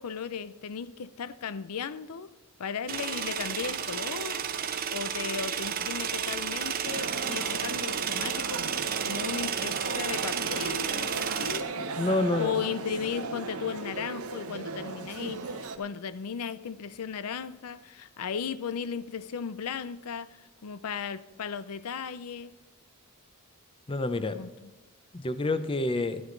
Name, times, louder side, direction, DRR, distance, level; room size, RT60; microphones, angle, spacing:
voice 1, 0.0-2.3 2.6-4.5 4.9-8.7 9.0-11.7 12.3-22.6 24.1-24.7, left 6 dB, 85° left, 0.5 m, -36 dB
sound 1, 2.9-11.6, right 8 dB, 40° right, 0.8 m, -32 dB
sound 2, 6.8-15.8, right 3 dB, 80° right, 1.0 m, -37 dB
voice 2, 12.0-12.5 23.9-24.4 25.1-26.2, left 2 dB, 25° left, 0.6 m, -28 dB
13.0 x 12.5 x 3.9 m
head